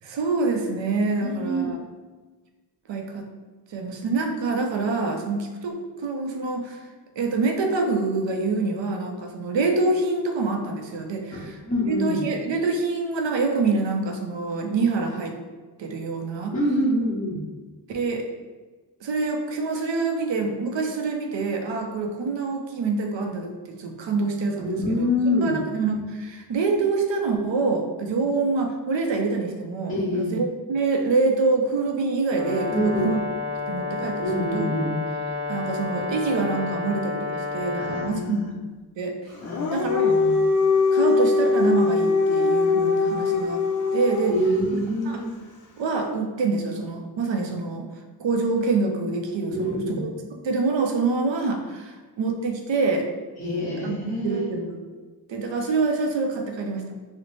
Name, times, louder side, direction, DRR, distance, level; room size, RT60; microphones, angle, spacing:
voice 1, 0.0-1.8 2.9-3.3 3.7-6.8 7.2-11.6 11.9-15.4 15.8-16.5 17.9-18.2 19.0-25.1 25.4-33.2 33.7-34.7 35.5-38.5 39.0-39.3 39.7-40.1 40.9-43.6 43.9-44.4 45.1-45.2 45.8-47.9 48.2-50.1 50.4-53.1 53.8-54.8 55.3-56.9, right 3 dB, 80° right, 3 dB, 0.6 m, -26 dB
voice 2, 1.2-1.7 11.3-12.2 16.5-17.4 24.6-25.6 29.9-30.4 32.7-33.1 34.2-34.9 37.8-38.4 39.4-40.3 44.3-45.3 49.5-50.0 53.4-54.4, equal, 20° left, -13 dB, 1.1 m, -26 dB
Brass instrument, 32.3-38.2, left 4 dB, 30° right, 0.5 m, -30 dB
Dog, 39.4-44.5, left 4 dB, 45° left, 0.5 m, -21 dB
3.1 x 2.1 x 4.0 m, 1.3 s
wide cardioid pair, 75°, 44 cm